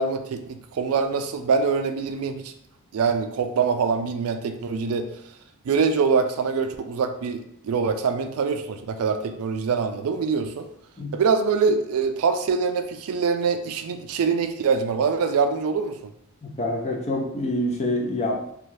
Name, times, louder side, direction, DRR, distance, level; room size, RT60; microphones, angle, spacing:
voice 1, 0.0-2.5 2.9-5.1 5.7-10.7 11.1-16.1, right 5 dB, 80° right, 8 dB, 0.3 m, -24 dB
voice 2, 16.4-18.5, left 1 dB, 30° left, 1 dB, 0.5 m, -26 dB
2.6 x 2.3 x 3.2 m, 0.73 s
head